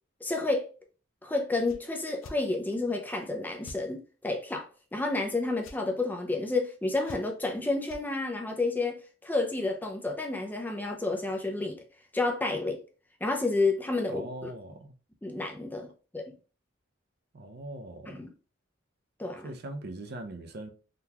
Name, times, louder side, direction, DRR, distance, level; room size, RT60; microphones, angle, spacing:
voice 1, 0.2-0.7 1.2-11.8 12.1-12.8 13.2-14.5 15.2-16.3 18.1-18.3 19.2-19.5, left 2 dB, 10° left, 0.4 m, -30 dB
sound 1, 1.6-1.8 2.2-2.4 3.6-3.8 5.6-5.8 7.0-7.5 7.8-8.0, left 2 dB, 80° left, 0.5 m, -45 dB
voice 2, 14.1-14.9 17.3-18.3 19.4-20.7, right 1 dB, 50° right, 0.5 m, -41 dB
3.7 x 2.3 x 2.8 m
head